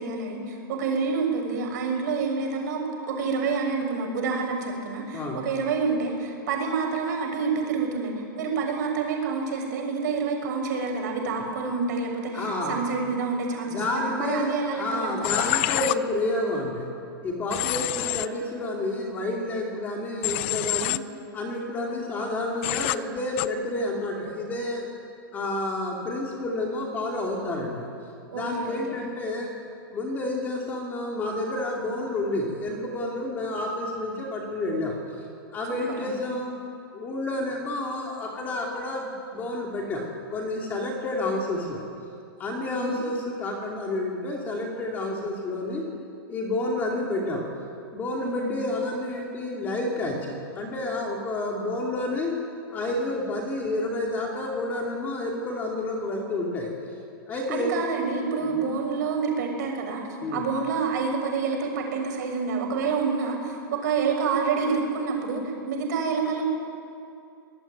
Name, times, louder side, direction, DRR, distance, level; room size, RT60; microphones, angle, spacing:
voice 1, 0.0-15.4 28.3-28.9 35.7-36.4 42.7-43.0 48.2-48.6 57.3-60.0 60.3-66.4, right 5 dB, 50° right, 2 dB, 6.8 m, -28 dB
voice 2, 5.1-5.4 12.3-12.8 13.7-16.9 17.2-21.0 21.3-24.9 25.3-27.9 28.3-29.5 29.9-35.0 35.5-36.5 36.9-40.1 40.3-41.8 42.4-45.9 46.3-47.4 47.9-52.4 52.7-56.7 57.3-57.8 58.4-58.5 60.2-60.4, left 2 dB, 15° left, -1 dB, 2.7 m, -30 dB
Human voice / Train, 15.2-15.9 17.5-18.3 20.2-21.0 22.6-23.0 23.4-23.5, left 17 dB, 30° left, 0.5 m, -26 dB
25.0 x 19.5 x 9.3 m, 2.5 s
supercardioid pair, 170°, 12 cm